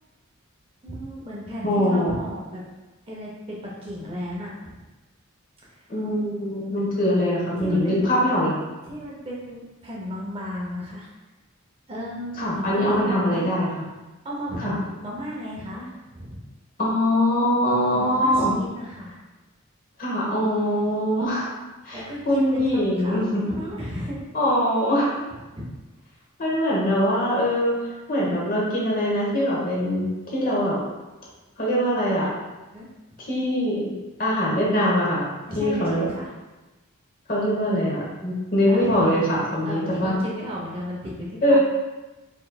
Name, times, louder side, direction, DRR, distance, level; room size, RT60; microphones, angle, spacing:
voice 1, 0.8-2.6 3.1-4.9 5.6-5.8 7.6-8.2 8.8-11.1 11.9-13.5 14.2-16.4 17.9-19.2 21.9-24.2 25.5-25.7 32.7-32.9 35.5-36.3 38.7-39.3 39.7-41.6, equal, 25° right, -4 dB, 0.7 m, -34 dB
voice 2, 1.6-2.1 5.9-8.6 12.4-13.8 14.6-14.8 16.8-18.5 20.0-21.5 21.8-22.0 22.2-23.4 24.3-25.1 26.4-27.8 28.1-30.8 31.6-32.3 33.3-33.9 34.2-35.3 35.5-36.0 37.3-40.1 41.4-41.6, equal, 40° left, -5 dB, 1.1 m, -22 dB
4.0 x 3.8 x 2.3 m, 1.1 s
head